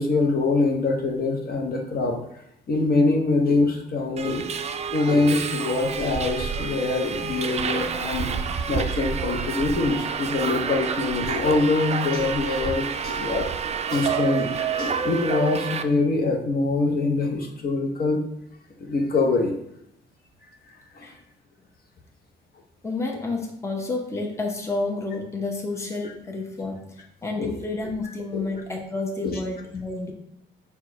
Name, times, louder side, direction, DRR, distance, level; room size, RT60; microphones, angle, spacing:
voice 1, 0.0-2.2 2.7-4.5 4.9-8.3 8.7-13.5 13.9-14.5 14.8-18.2 18.8-19.5 20.9-21.1 27.4-27.6 28.3-28.5 29.2-29.4, left 3 dB, 50° left, 1 dB, 0.8 m, -24 dB
Subway metro underground, 4.2-15.8, right 6 dB, 35° right, 0.3 m, -29 dB
voice 2, 22.8-30.1, left 3 dB, 15° left, 1 dB, 0.8 m, -30 dB
4.5 x 2.3 x 4.6 m, 0.77 s
cardioid pair, 90°, 20 cm